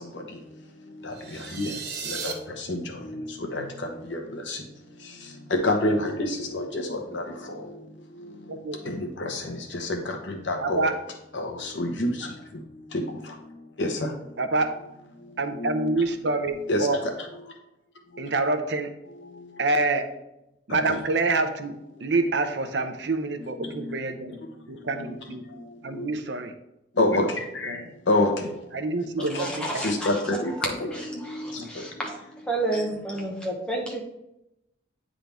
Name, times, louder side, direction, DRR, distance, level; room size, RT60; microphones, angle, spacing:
voice 1, 0.0-14.9 15.1-17.5 18.1-18.3 19.1-19.6 20.7-21.0 21.9-22.0 23.4-26.2 26.9-32.0, left 1 dB, 90° left, 2 dB, 1.1 m, -31 dB
sound 1, 1.1-2.3, right 5 dB, 60° right, 1.0 m, -35 dB
voice 2, 10.6-10.9 14.4-14.7 15.4-17.0 18.2-18.9 19.6-20.1 20.7-21.7 22.0-24.4 24.7-25.4 25.8-26.5 27.7-27.8 28.7-29.8 31.6-31.7, right 3 dB, 75° right, 8 dB, 0.7 m, -26 dB
voice 3, 29.2-30.1 30.9-32.2 32.5-34.0, right 2 dB, 5° left, -2 dB, 1.1 m, -31 dB
8.9 x 3.8 x 3.5 m, 0.88 s
head